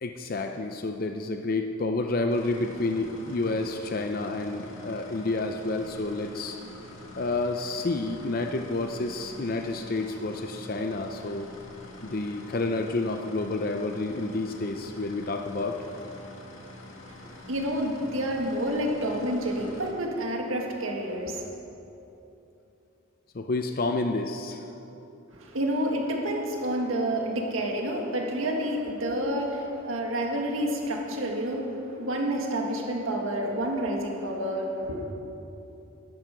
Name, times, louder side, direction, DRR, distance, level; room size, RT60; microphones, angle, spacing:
voice 1, 0.0-6.6 7.2-11.5 12.0-15.8 23.3-24.6, left 2 dB, 45° left, 5 dB, 0.5 m, -29 dB
sound 1, 2.3-19.9, left 1 dB, 80° left, 2.0 m, -46 dB
voice 2, 17.1-21.5 25.3-35.1, right 1 dB, 80° right, 1 dB, 1.8 m, -29 dB
12.5 x 12.5 x 5.1 m, 2.9 s
head